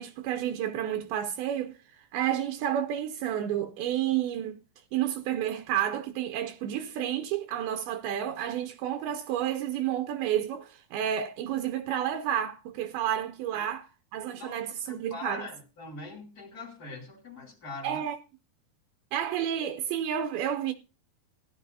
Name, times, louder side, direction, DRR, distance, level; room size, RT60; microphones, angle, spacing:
voice 1, 0.0-4.6 4.9-15.5 17.8-18.2 19.1-20.7, right 10 dB, 80° right, 2.5 m, -30 dB
voice 2, 14.4-18.0, left 3 dB, 25° left, 2.7 m, -42 dB
16.5 x 11.5 x 2.7 m
omnidirectional pair, 4.5 m